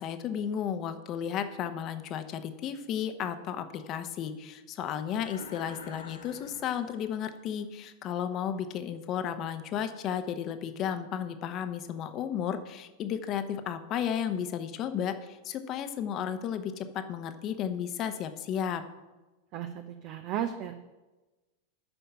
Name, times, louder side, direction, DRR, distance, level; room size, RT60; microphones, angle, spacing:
voice 1, 0.0-15.1 15.4-18.8, left 8 dB, 35° left, 9 dB, 1.1 m, -33 dB
sound 1, 5.1-7.4, left 3 dB, 80° left, 1.9 m, -47 dB
voice 2, 19.5-20.7, right 10 dB, 40° right, 8 dB, 0.8 m, -34 dB
9.8 x 6.8 x 8.8 m, 1.1 s
figure-of-eight pair, 90°, 0 cm